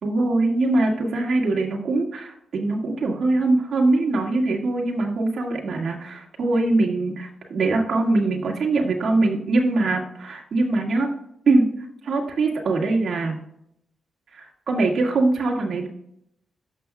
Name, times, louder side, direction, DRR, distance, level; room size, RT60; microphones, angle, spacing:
voice 1, 0.0-11.1 11.5-11.7 12.0-13.4 14.3-15.9, right 2 dB, 55° right, -1 dB, 1.9 m, -22 dB
13.5 x 6.1 x 2.3 m, 0.73 s
wide cardioid pair, 135°, 0 cm